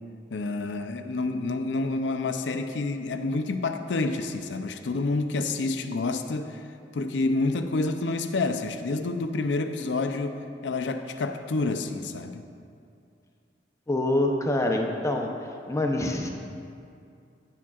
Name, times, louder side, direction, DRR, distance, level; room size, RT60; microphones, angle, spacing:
voice 1, 0.3-6.6 6.9-12.5, left 3 dB, 85° left, 8 dB, 0.5 m, -28 dB
voice 2, 13.9-15.3 15.7-16.3, left 1 dB, 20° left, 2 dB, 0.6 m, -25 dB
9.8 x 8.4 x 2.4 m, 2.4 s
head